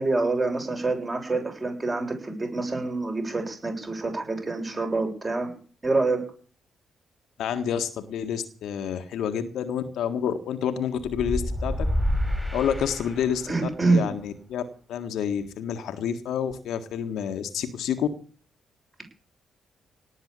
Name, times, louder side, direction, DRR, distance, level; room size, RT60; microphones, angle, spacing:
voice 1, 0.0-5.5 5.8-6.2 13.5-14.1, right 3 dB, 30° right, 3 dB, 7.2 m, -26 dB
voice 2, 7.4-11.9 12.5-13.5 13.8-14.6 14.9-18.1, left 8 dB, 65° left, 8 dB, 1.7 m, -28 dB
sound 1, 11.0-13.7, equal, 5° right, 4.1 m, -28 dB
18.0 x 7.3 x 8.7 m, 0.41 s
figure-of-eight pair, 40°, 0 cm